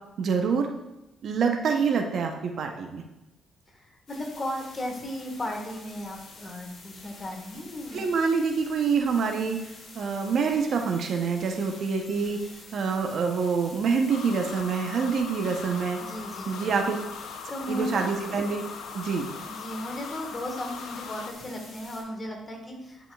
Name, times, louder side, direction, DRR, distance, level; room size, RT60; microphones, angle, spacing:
voice 1, 0.2-0.7 1.2-3.0 7.9-9.6 9.9-12.4 12.7-16.0 16.5-17.0 17.7-18.6 18.9-19.3, right 5 dB, 60° right, 3 dB, 0.7 m, -26 dB
voice 2, 3.7-8.0 16.0-16.7 17.5-18.0 19.5-23.1, equal, 25° left, 1 dB, 1.5 m, -35 dB
sound 1, 4.1-22.0, left 3 dB, 55° left, 2.2 m, -48 dB
sound 2, 14.1-21.3, left 6 dB, 80° left, 0.5 m, -40 dB
9.9 x 5.0 x 2.3 m, 0.93 s
cardioid pair, 90°, 0 cm